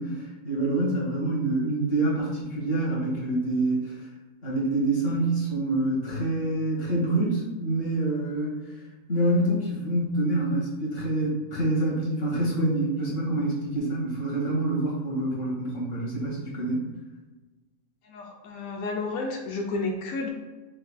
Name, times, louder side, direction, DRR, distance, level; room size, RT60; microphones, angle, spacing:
voice 1, 0.0-4.0 4.4-8.8 9.1-16.8, right 2 dB, 45° left, -4 dB, 1.6 m, -26 dB
voice 2, 18.0-20.3, left 3 dB, 90° left, 1 dB, 1.1 m, -31 dB
6.5 x 3.4 x 2.3 m, 1.2 s
omnidirectional pair, 1.5 m